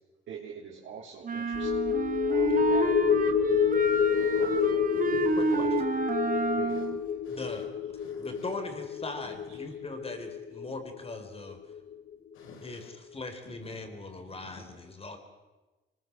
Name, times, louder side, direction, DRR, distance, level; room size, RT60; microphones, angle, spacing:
voice 1, 0.3-1.9 2.3-2.9 4.1-4.9 5.3-5.5 6.6-6.9 9.5-9.8 13.7-13.8, right 6 dB, 75° right, -5 dB, 3.9 m, -45 dB
sound 1, 1.2-7.0, right 4 dB, 45° right, 1.9 m, -30 dB
sound 2, 1.5-12.1 12.5-12.6, left 7 dB, 50° left, 1.2 m, -29 dB
voice 2, 3.8-5.8 6.7-6.9 7.2-8.4 12.3-12.9 13.4-13.8 14.3-14.8, left 4 dB, 90° left, 5 dB, 4.6 m, -53 dB
voice 3, 5.4-5.9 7.3-7.7 8.2-11.6 12.6-15.2, left 3 dB, 30° left, 6 dB, 4.6 m, -40 dB
24.5 x 21.0 x 7.7 m, 1.2 s
cardioid pair, 90°, 20 cm